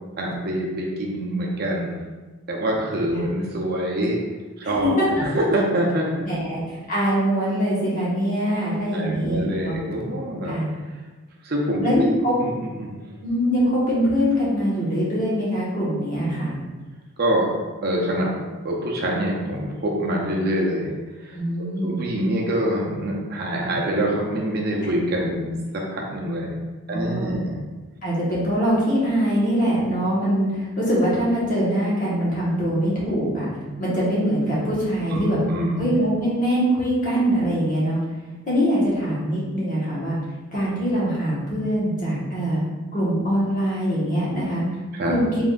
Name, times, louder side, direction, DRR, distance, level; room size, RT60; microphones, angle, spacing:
voice 1, 0.2-2.0 2.5-4.2 4.6-4.9 5.2-6.5 8.9-10.6 11.4-12.1 12.4-13.0 17.2-17.5 17.8-18.3 18.6-20.9 21.2-21.4 21.8-26.5 26.9-27.6 35.1-35.9 44.9-45.1, right 1 dB, 45° right, -2 dB, 0.6 m, -25 dB
voice 2, 4.6-5.2 6.3-9.8 10.4-10.7 11.8-12.3 13.2-16.6 21.3-22.0 26.9-27.4 28.0-33.5 33.8-35.4 35.8-38.0 38.5-40.2 40.5-42.6 42.9-44.6 45.1-45.3, equal, 40° left, -8 dB, 1.2 m, -23 dB
4.0 x 3.5 x 2.4 m, 1.3 s
head